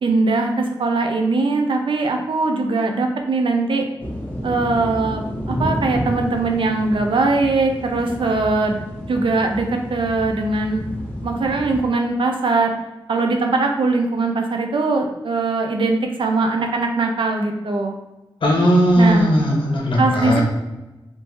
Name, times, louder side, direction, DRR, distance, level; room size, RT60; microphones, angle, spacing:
voice 1, 0.0-3.8 4.4-5.2 5.5-8.8 9.1-10.8 11.2-12.7 13.1-18.0 19.0-19.3 20.0-20.4, right 3 dB, 80° right, 4 dB, 0.5 m, -21 dB
sound 1, 4.0-11.8, equal, 15° left, 1.2 m, -30 dB
voice 2, 18.4-20.4, equal, 80° left, -3 dB, 1.0 m, -17 dB
3.6 x 2.6 x 2.9 m, 1.0 s
wide cardioid pair, 65°, 9 cm